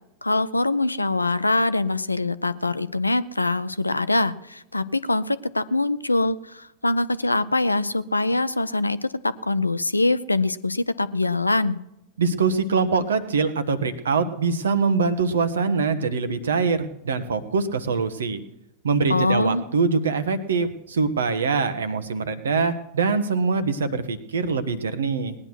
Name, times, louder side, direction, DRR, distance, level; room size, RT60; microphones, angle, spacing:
voice 1, 0.2-11.8 19.1-19.6, left 2 dB, 85° left, 15 dB, 0.6 m, -23 dB
voice 2, 12.2-18.4 18.8-25.4, right 4 dB, 65° right, 12 dB, 1.2 m, -23 dB
19.0 x 9.9 x 6.2 m, 0.83 s
figure-of-eight pair, 90°, 0 cm